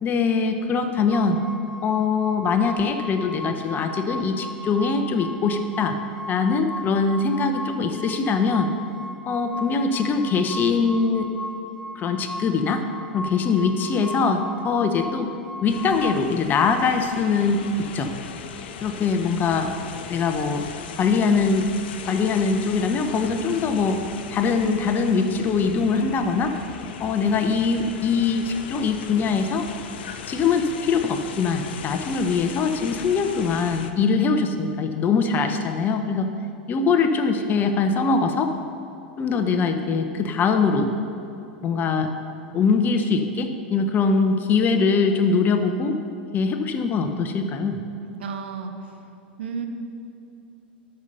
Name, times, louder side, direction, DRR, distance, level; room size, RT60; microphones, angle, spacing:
voice 1, 0.0-1.4 1.8-6.0 6.3-8.7 9.3-11.3 11.9-12.9 13.1-15.3 15.6-18.1 18.8-19.7 20.1-20.7 21.0-21.7 22.1-24.0 24.3-26.5 27.0-29.7 30.3-36.3 36.7-38.5 39.2-40.9 41.6-42.1 42.5-46.0 46.3-47.8, left 4 dB, 35° left, 7 dB, 0.9 m, -22 dB
sound 1, 1.1-16.1, left 1 dB, ahead, 0.5 m, -37 dB
sound 2, 15.7-33.9, left 7 dB, 70° left, 0.7 m, -38 dB
voice 2, 48.2-48.7 49.4-49.7, right 5 dB, 80° right, 5 dB, 1.1 m, -31 dB
12.0 x 5.6 x 6.9 m, 2.8 s
hypercardioid pair, 100°, 6 cm